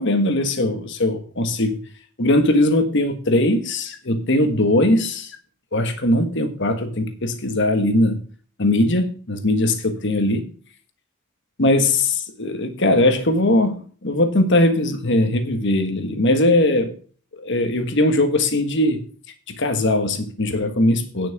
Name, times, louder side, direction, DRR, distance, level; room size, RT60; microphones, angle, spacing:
voice 1, 0.0-1.8 2.2-5.3 5.7-8.2 8.6-10.5 11.6-16.9 17.4-19.0 19.6-21.3, left 1 dB, 55° left, 1.5 m, -20 dB
9.8 x 5.9 x 7.1 m
head